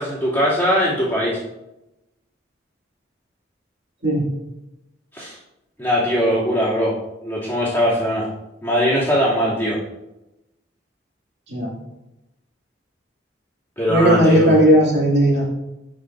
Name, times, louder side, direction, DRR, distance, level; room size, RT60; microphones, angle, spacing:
voice 1, 0.0-1.4 5.1-5.4 5.8-7.0 7.2-8.3 8.6-9.8 13.8-14.5, equal, 10° left, -9 dB, 2.4 m, -20 dB
voice 2, 13.9-15.5, equal, 60° right, -5 dB, 2.4 m, -16 dB
9.7 x 6.1 x 2.6 m, 0.94 s
head